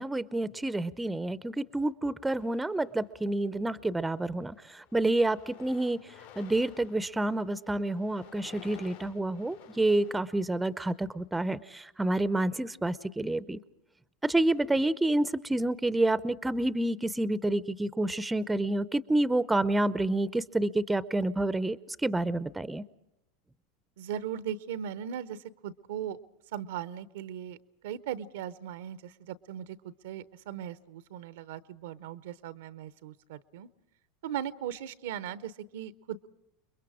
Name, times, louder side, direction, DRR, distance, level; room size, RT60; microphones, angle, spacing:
voice 1, 0.0-6.0 6.4-13.6 14.2-22.8, right 2 dB, 10° right, 17 dB, 0.7 m, -29 dB
sound 1, 2.3-3.3 4.0-4.2 4.5-11.0, left 9 dB, 75° left, 4.5 m, -54 dB
voice 2, 24.0-26.2 26.5-27.6 27.8-33.7 34.2-36.3, right 9 dB, 65° right, 16 dB, 0.8 m, -38 dB
29.5 x 22.0 x 4.9 m, 0.87 s
figure-of-eight pair, 80°, 0 cm